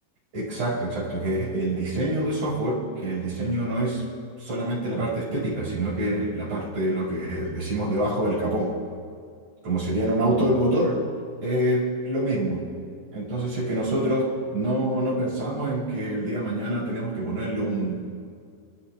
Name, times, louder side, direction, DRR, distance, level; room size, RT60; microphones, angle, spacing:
voice 1, 0.3-4.0 4.4-8.8 9.6-11.0 11.4-12.7 13.1-18.1, right 1 dB, 35° right, -6 dB, 6.5 m, -26 dB
29.0 x 13.5 x 3.4 m, 2.2 s
omnidirectional pair, 5.3 m